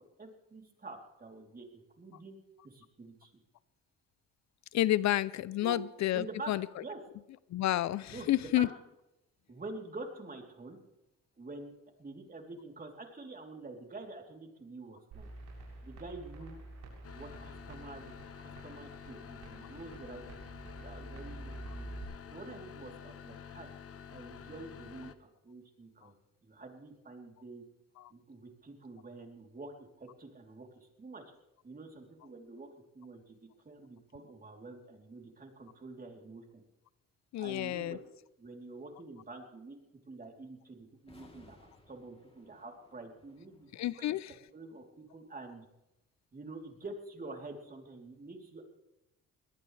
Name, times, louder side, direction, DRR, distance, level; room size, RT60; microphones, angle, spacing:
voice 1, 0.2-2.4 2.6-3.3 5.6-5.8 6.1-7.0 8.1-8.7 9.5-10.8 11.4-11.7 12.0-15.3 15.8-16.6 17.1-18.1 18.4-20.3 20.6-21.9 22.3-23.7 24.1-26.1 26.4-27.6 28.1-31.2 31.6-32.7 32.9-33.4 33.6-36.6 37.4-38.0 38.4-39.8 40.1-43.7 44.0-45.7 46.3-48.6, right 3 dB, 30° right, 2 dB, 3.3 m, -47 dB
voice 2, 4.7-6.6 7.5-8.7 37.3-38.0 43.7-44.3, left 14 dB, 65° left, 19 dB, 0.5 m, -30 dB
sound 1, 15.1-22.0, right 2 dB, 90° right, 7.3 m, -48 dB
sound 2, 17.0-25.1, left 7 dB, 50° left, 1.1 m, -49 dB
sound 3, 41.0-44.2, left 2 dB, 20° left, 3.1 m, -61 dB
22.5 x 18.0 x 3.3 m, 0.93 s
cardioid pair, 90°, 30 cm